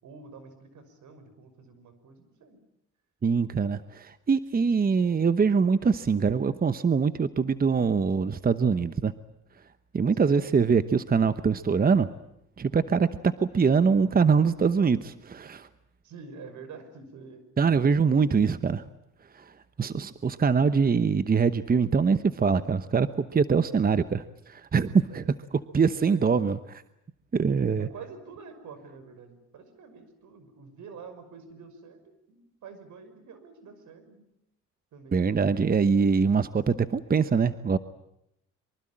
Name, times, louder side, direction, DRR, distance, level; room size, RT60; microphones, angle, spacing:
voice 1, 0.0-2.6 10.1-10.4 16.0-17.7 25.1-25.3 25.9-26.4 27.8-32.0 32.3-34.3 34.9-35.2, right 5 dB, 75° right, 10 dB, 5.9 m, -47 dB
voice 2, 3.2-9.1 9.9-12.1 12.6-13.1 13.4-15.7 17.6-18.8 19.3-19.5 19.8-25.2 25.7-26.6 27.3-27.9 35.1-37.8, right 5 dB, 30° right, 13 dB, 1.0 m, -23 dB
24.5 x 24.5 x 8.8 m, 0.79 s
cardioid pair, 90°, 30 cm